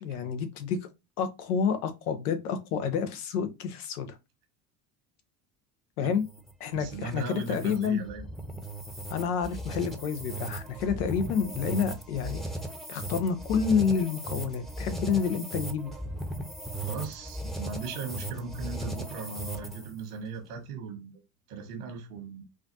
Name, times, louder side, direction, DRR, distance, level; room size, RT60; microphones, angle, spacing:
voice 1, 0.0-0.8 1.2-4.2 6.0-6.3 6.6-8.1 9.1-12.4 12.9-15.9, left 6 dB, 85° left, 0.9 m, -29 dB
sound 1, 6.1-20.0, right 1 dB, ahead, 0.7 m, -37 dB
voice 2, 6.7-8.2 16.8-21.2 21.5-22.4, right 4 dB, 90° right, 1.5 m, -38 dB
4.9 x 2.4 x 2.7 m
supercardioid pair, 90°, 44 cm